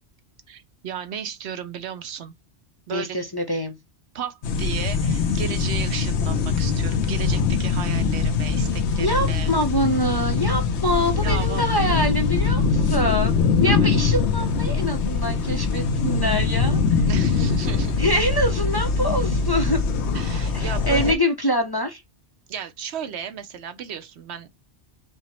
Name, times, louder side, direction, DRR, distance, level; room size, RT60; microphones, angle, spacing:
voice 1, 0.5-2.3 2.9-3.2 4.1-9.5 11.2-11.7 13.6-13.9 17.1-18.0 20.1-21.2 22.5-24.5, right 8 dB, 75° right, 1.0 m, -34 dB
voice 2, 2.9-3.8 9.0-17.1 18.0-19.8 20.5-22.0, equal, 25° left, 0.6 m, -25 dB
sound 1, 4.4-21.1, left 5 dB, 90° left, 1.0 m, -22 dB
4.9 x 2.1 x 4.2 m
omnidirectional pair, 1.1 m